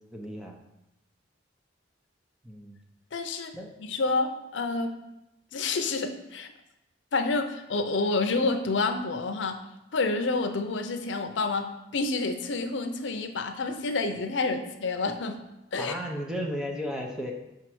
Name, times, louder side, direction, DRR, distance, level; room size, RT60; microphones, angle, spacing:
voice 1, 0.1-0.6 2.4-2.8 3.5-3.7 15.8-17.3, equal, 5° right, 0 dB, 0.8 m, -34 dB
voice 2, 3.1-4.9 5.5-6.5 7.1-9.6 9.9-15.4 15.7-15.9, left 3 dB, 80° left, 6 dB, 0.6 m, -29 dB
5.2 x 4.6 x 6.1 m, 0.91 s
head